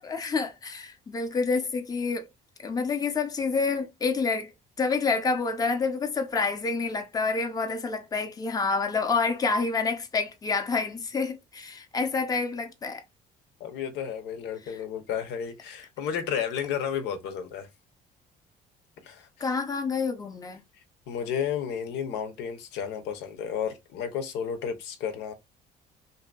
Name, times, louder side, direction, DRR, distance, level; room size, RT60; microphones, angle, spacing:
voice 1, 0.0-2.3 2.6-4.5 4.8-13.0 14.7-14.8 19.4-20.6, left 4 dB, 20° left, 0.6 m, -28 dB
voice 2, 13.6-17.7 19.0-19.3 21.1-25.3, left 8 dB, 85° left, 0.7 m, -32 dB
2.7 x 2.6 x 2.3 m
cardioid pair, 110°, 17 cm